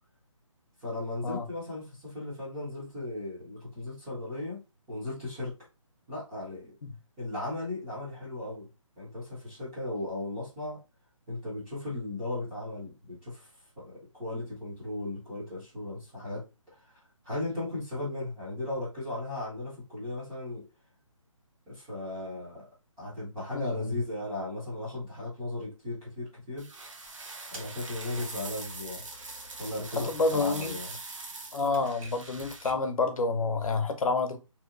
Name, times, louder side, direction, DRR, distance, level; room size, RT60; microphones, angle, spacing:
voice 1, 0.8-4.6 4.9-5.5 6.1-6.7 7.2-8.7 9.0-10.8 11.3-13.5 13.8-16.4 17.2-20.6 21.7-22.7 23.0-26.7 27.5-29.0 29.6-30.9, left 2 dB, 5° right, 0.4 m, -36 dB
voice 2, 23.5-24.0 29.9-30.8 31.5-34.4, left 3 dB, 85° left, 0.6 m, -29 dB
sound 1, 26.6-32.7, right 3 dB, 65° right, 0.7 m, -43 dB
Typewriter, 27.5-33.0, right 1 dB, 90° right, 0.9 m, -51 dB
2.7 x 2.0 x 2.3 m
hypercardioid pair, 165°, 17 cm